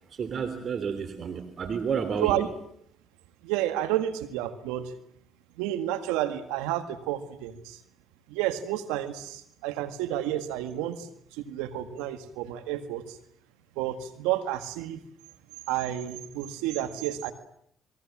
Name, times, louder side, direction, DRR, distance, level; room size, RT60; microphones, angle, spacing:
voice 1, 0.1-2.4, right 6 dB, 50° right, 9 dB, 3.1 m, -30 dB
voice 2, 3.4-4.9 5.6-7.8 8.3-13.2 13.8-15.0 15.7-17.3, right 13 dB, 85° right, 10 dB, 1.8 m, -30 dB
28.5 x 22.0 x 7.5 m, 0.69 s
supercardioid pair, 60°, 0 cm